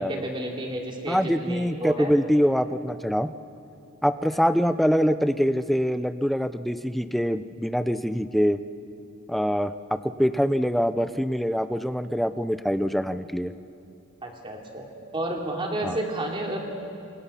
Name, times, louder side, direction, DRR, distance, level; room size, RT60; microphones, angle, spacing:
voice 1, 0.0-2.1 4.3-4.4 14.2-14.9 15.1-16.6, right 1 dB, 25° right, 0 dB, 3.0 m, -31 dB
voice 2, 1.1-3.3 4.0-8.6 9.3-13.5 15.8-16.0, equal, ahead, 11 dB, 0.5 m, -24 dB
28.5 x 25.0 x 5.7 m, 2.7 s
head